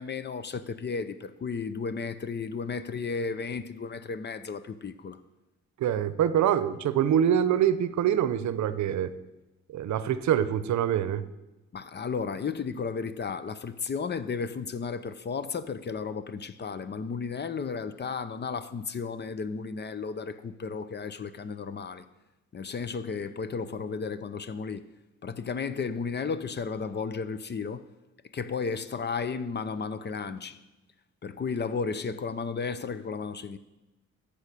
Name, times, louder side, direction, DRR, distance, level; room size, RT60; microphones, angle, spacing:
voice 1, 0.0-5.2 11.7-22.1 22.5-24.9 25.2-27.8 28.3-30.6 31.2-33.6, left 5 dB, 35° left, 0.7 m, -33 dB
voice 2, 5.8-9.1 9.7-11.2, right 9 dB, 70° right, 0.7 m, -25 dB
14.0 x 5.1 x 6.7 m
cardioid pair, 90°, 30 cm